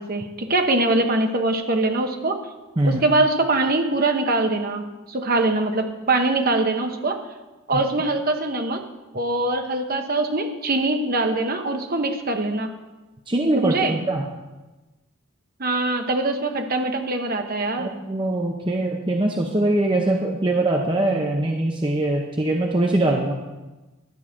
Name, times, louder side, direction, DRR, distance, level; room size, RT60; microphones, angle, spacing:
voice 1, 0.0-2.4 2.8-7.2 7.7-8.8 9.1-12.7 13.6-14.0 15.6-17.9, right 2 dB, 40° right, 5 dB, 1.0 m, -23 dB
voice 2, 13.3-14.2 17.8-23.3, right 1 dB, 20° right, 1 dB, 0.7 m, -22 dB
12.0 x 4.9 x 7.6 m, 1.1 s
head